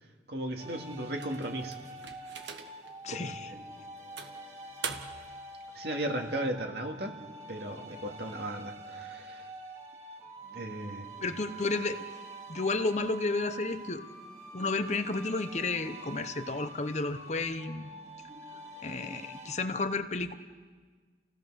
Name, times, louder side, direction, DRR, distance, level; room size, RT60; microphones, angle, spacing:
voice 1, 0.3-1.8 3.1-3.6 5.8-7.1 7.5-9.4 10.5-11.1, right 1 dB, 65° right, 2 dB, 2.4 m, -36 dB
sound 1, 0.6-19.5, right 2 dB, 40° right, 2.8 m, -46 dB
sound 2, 1.2-2.9 3.4-3.6 4.2-5.4, right 6 dB, 85° right, 1.5 m, -42 dB
voice 2, 3.0-3.5 11.2-12.0 12.5-14.0 14.5-17.9 18.8-20.3, left 3 dB, 40° left, 9 dB, 0.9 m, -32 dB
29.5 x 17.0 x 6.4 m, 1.5 s
head